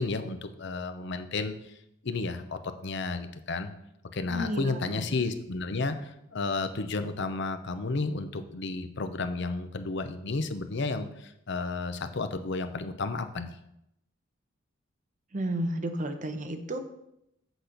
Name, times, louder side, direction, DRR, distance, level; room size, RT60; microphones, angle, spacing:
voice 1, 0.0-1.8 2.0-3.7 4.1-13.6, left 3 dB, 65° left, 10 dB, 0.7 m, -32 dB
voice 2, 4.3-5.0 15.3-16.8, right 1 dB, 40° right, 6 dB, 0.8 m, -32 dB
8.0 x 4.2 x 6.5 m, 0.81 s
head